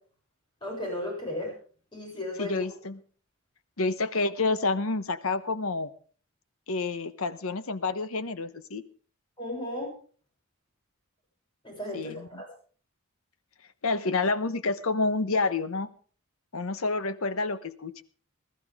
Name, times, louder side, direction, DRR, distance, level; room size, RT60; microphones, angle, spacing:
voice 1, 0.6-1.5 1.9-2.6 9.4-9.9 11.6-12.5, left 1 dB, 20° left, -1 dB, 7.5 m, -34 dB
voice 2, 2.4-3.0 3.8-5.9 6.7-8.8 11.9-12.4 13.8-15.9 16.5-18.0, left 3 dB, 85° left, 13 dB, 1.1 m, -29 dB
20.5 x 13.5 x 3.7 m, 0.43 s
head